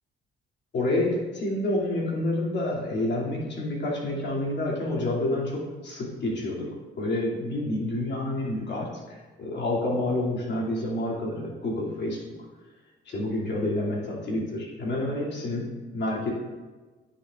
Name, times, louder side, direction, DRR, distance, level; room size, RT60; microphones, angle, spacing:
voice 1, 0.7-6.7 7.0-12.2 13.1-16.3, left 1 dB, 60° left, -4 dB, 2.5 m, -28 dB
9.9 x 6.8 x 2.4 m, 1.3 s
cardioid pair, 90°, 20 cm